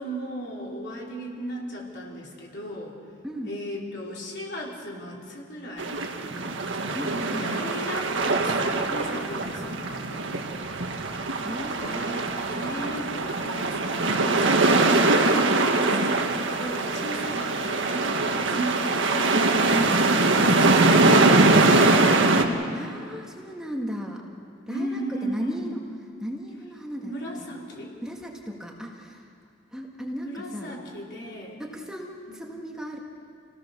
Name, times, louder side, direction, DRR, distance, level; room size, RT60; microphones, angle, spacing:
voice 1, 0.0-3.0 3.4-6.1 7.0-10.5 11.8-14.9 15.6-19.4 24.7-25.6 27.0-28.0 30.2-31.6 32.3-32.4, equal, 60° left, -3 dB, 4.3 m, -36 dB
sound 1, 5.8-22.4, right 2 dB, 75° right, 1.7 m, -22 dB
voice 2, 6.9-7.7 11.4-12.5 22.7-24.2 24.7-25.7 26.2-27.1 28.0-29.2 29.7-30.8 31.6-33.0, equal, 5° right, -1 dB, 1.8 m, -36 dB
28.5 x 17.0 x 6.7 m, 2.4 s
head